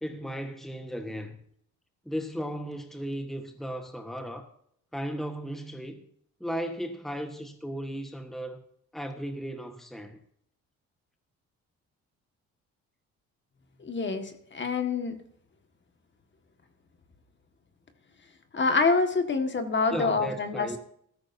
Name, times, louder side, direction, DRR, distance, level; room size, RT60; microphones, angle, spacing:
voice 1, 0.0-1.4 2.0-4.5 4.9-6.0 6.4-8.6 8.9-10.2 19.9-20.8, equal, ahead, 1.3 m, -35 dB
voice 2, 13.8-15.2 18.5-20.8, left 4 dB, 40° left, 1.8 m, -26 dB
14.5 x 13.5 x 2.7 m
cardioid pair, 90°, 30 cm